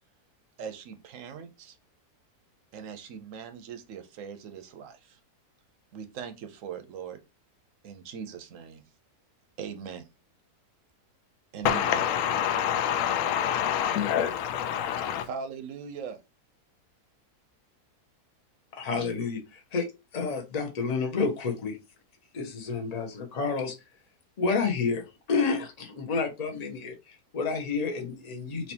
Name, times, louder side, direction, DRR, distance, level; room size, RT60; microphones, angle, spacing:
voice 1, 0.6-1.8 2.7-5.2 5.9-7.2 7.8-8.8 9.6-10.1 11.5-12.1 15.2-16.2, right 7 dB, 65° right, 0.9 m, -40 dB
voice 2, 11.6-15.3, left 9 dB, 65° left, 0.9 m, -26 dB
voice 3, 18.7-19.9 20.1-21.8 22.3-23.7 24.4-28.7, left 4 dB, 35° left, 0.7 m, -30 dB
4.3 x 2.9 x 2.8 m
omnidirectional pair, 1.7 m